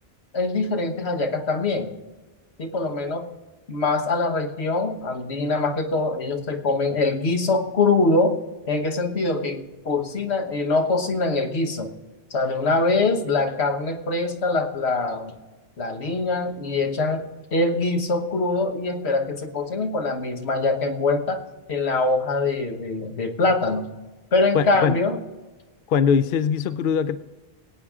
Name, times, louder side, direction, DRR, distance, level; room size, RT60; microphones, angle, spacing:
voice 1, 0.3-1.9 2.6-3.3 3.7-8.4 8.7-11.9 12.3-15.3 15.8-17.3 17.5-21.4 21.7-23.9 24.3-25.2, left 3 dB, 85° left, 4 dB, 1.5 m, -23 dB
voice 2, 24.5-25.0 25.9-27.2, left 7 dB, 65° left, 13 dB, 0.7 m, -21 dB
22.5 x 8.7 x 3.7 m, 1.2 s
omnidirectional pair, 1.1 m